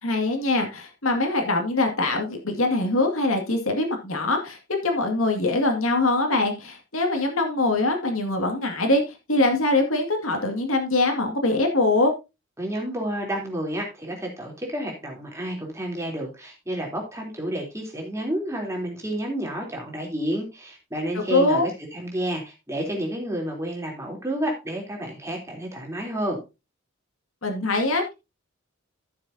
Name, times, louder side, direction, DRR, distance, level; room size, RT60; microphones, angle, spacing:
voice 1, 0.0-12.1 21.3-21.7 27.4-28.1, left 2 dB, 75° left, 4 dB, 2.2 m, -23 dB
voice 2, 12.6-26.4, right 1 dB, 15° right, -1 dB, 3.4 m, -30 dB
14.5 x 7.2 x 2.8 m, 0.26 s
head